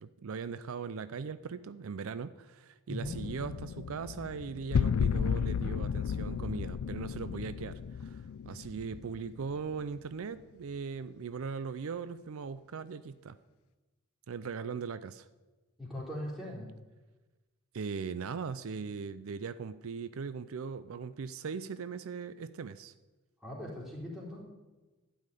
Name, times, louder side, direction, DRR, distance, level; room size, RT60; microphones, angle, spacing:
voice 1, 0.0-13.4 14.3-15.3 17.7-22.9, right 5 dB, 65° right, 13 dB, 0.4 m, -39 dB
sound 1, 3.0-9.8, left 7 dB, 75° left, 0.3 m, -34 dB
voice 2, 15.8-16.7 23.4-24.4, left 1 dB, ahead, -5 dB, 3.7 m, -40 dB
12.5 x 5.7 x 9.1 m, 1.2 s
head